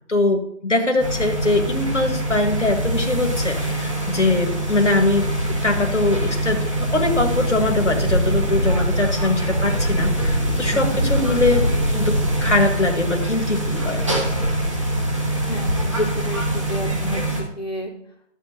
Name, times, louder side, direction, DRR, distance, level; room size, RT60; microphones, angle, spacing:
voice 1, 0.1-14.0, left 2 dB, 80° left, 3 dB, 1.5 m, -22 dB
sound 1, 1.0-17.4, right 1 dB, 25° right, 1.6 m, -23 dB
voice 2, 15.5-17.2 17.6-17.9, left 1 dB, 35° left, -5 dB, 2.2 m, -29 dB
13.0 x 7.3 x 2.8 m, 0.74 s
figure-of-eight pair, 170°, 36 cm